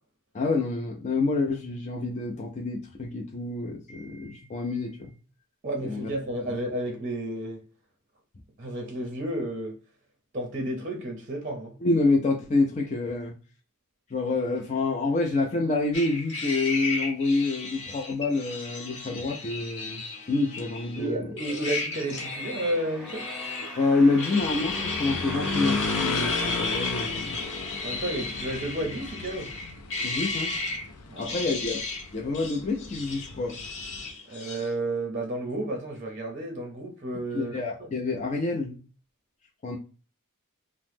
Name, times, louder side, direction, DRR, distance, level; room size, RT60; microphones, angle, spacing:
voice 1, 0.3-5.1 5.8-6.1 11.8-13.3 14.1-20.0 20.3-21.3 23.8-27.5 30.0-30.6 31.2-31.8 32.1-33.6 37.3-38.8 39.6-39.8, left 3 dB, 30° left, 0.4 m, -27 dB
voice 2, 5.6-7.6 8.6-9.8 10.3-11.7 21.0-23.3 27.8-29.5 31.1-31.2 34.3-37.9, right 1 dB, 35° right, 0.6 m, -32 dB
sound 1, 15.9-21.1 21.4-23.9 24.2-30.9 31.2-32.1 32.3-34.7, left 3 dB, 55° left, 0.8 m, -34 dB
sound 2, 22.0-27.9 28.5-28.6, equal, ahead, 0.9 m, -40 dB
sound 3, 24.4-34.1, left 4 dB, 80° left, 0.5 m, -35 dB
2.8 x 2.0 x 3.3 m
head